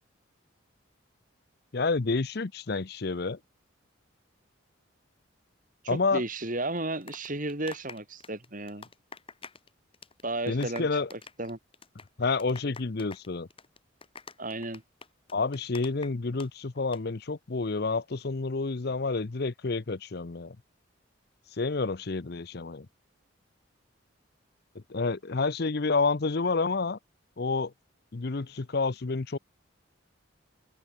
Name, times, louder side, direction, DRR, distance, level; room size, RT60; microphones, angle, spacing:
voice 1, 1.7-3.4 5.9-6.2 10.5-11.1 12.2-13.5 15.3-20.6 21.6-22.9 24.9-27.0 27.4-27.7 28.1-29.4, left 3 dB, 50° left, 0.7 m, -29 dB
voice 2, 5.8-8.9 10.2-11.6 14.4-14.8, right 2 dB, 40° right, 3.3 m, -34 dB
sound 1, 6.8-9.7 9.9-10.2 10.5-16.5 16.8-17.0, left 4 dB, 25° left, 4.9 m, -46 dB
head